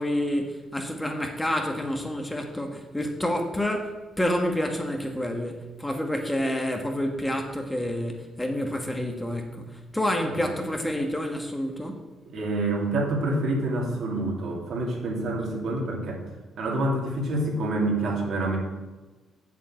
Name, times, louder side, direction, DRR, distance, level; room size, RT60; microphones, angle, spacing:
voice 1, 0.0-12.0, left 1 dB, 10° left, 1.5 m, -28 dB
voice 2, 12.2-16.2 16.6-18.6, right 2 dB, 70° right, 2.7 m, -27 dB
7.4 x 7.3 x 7.5 m
cardioid pair, 90°, 0 cm